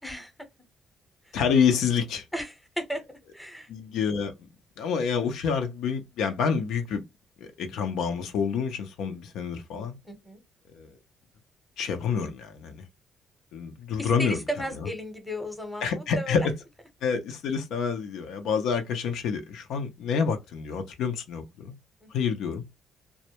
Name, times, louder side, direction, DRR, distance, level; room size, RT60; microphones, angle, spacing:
voice 1, 0.0-0.3 1.2-1.3 2.3-3.7 10.0-10.4 14.0-16.5 22.0-22.1, equal, ahead, 0.7 m, -35 dB
voice 2, 1.3-2.2 3.7-4.3 4.8-7.0 7.6-10.0 10.7-10.9 11.8-12.8 13.5-14.4 15.8-16.4 17.0-21.7 22.1-22.6, left 6 dB, 85° left, 0.5 m, -27 dB
2.1 x 2.0 x 2.8 m
cardioid pair, 90°, 0 cm